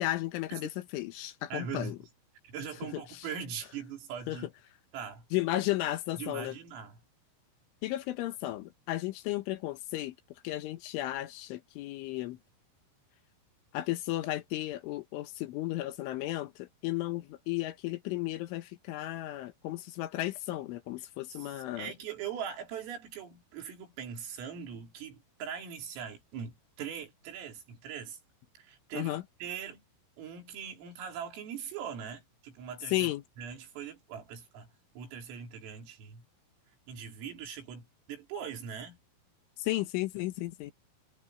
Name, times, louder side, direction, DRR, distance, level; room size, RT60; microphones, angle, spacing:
voice 1, 0.0-2.0 2.9-3.0 4.3-4.4 5.3-6.6 7.8-10.2 10.4-12.4 13.7-21.9 28.9-29.2 32.9-33.2 39.6-40.7, left 16 dB, 75° left, 3.4 m, -34 dB
voice 2, 1.5-2.0 2.5-4.5 4.9-5.2 6.2-7.0 21.3-21.5 21.8-28.2 28.6-29.8 30.2-33.1 33.4-34.7 35.0-36.2 36.9-39.0, right 7 dB, 80° right, 6.5 m, -41 dB
omnidirectional pair, 5.9 m